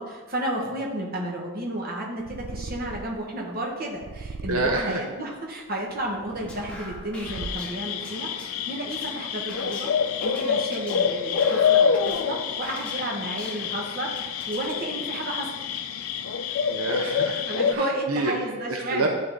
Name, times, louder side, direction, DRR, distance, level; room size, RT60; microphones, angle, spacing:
voice 1, 0.0-9.9 10.2-15.5 16.5-16.6 17.5-19.1, right 1 dB, 45° right, -2 dB, 1.3 m, -32 dB
Purr, 2.2-3.3 4.0-5.0 5.8-7.9, right 3 dB, 60° right, 0.3 m, -39 dB
voice 2, 4.5-5.0 8.0-8.1 16.7-17.4 17.7-18.3 18.7-19.1, right 2 dB, 80° right, 2 dB, 0.7 m, -27 dB
sound 1, 6.3-14.8, left 1 dB, 5° left, 0.9 m, -44 dB
sound 2, 7.3-17.7, left 7 dB, 75° left, 0.4 m, -27 dB
10.5 x 3.8 x 3.7 m, 1.3 s
head